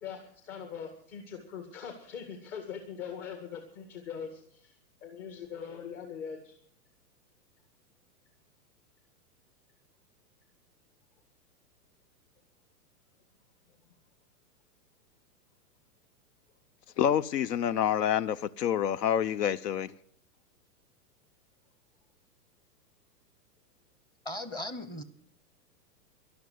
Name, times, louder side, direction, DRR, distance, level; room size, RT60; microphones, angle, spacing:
voice 1, 0.0-6.6, left 7 dB, 50° left, 2.1 m, -42 dB
voice 2, 17.0-19.9, left 9 dB, 85° left, 0.7 m, -27 dB
voice 3, 24.2-25.0, left 1 dB, 10° left, 0.7 m, -37 dB
12.5 x 11.5 x 7.8 m
hypercardioid pair, 140°, 47 cm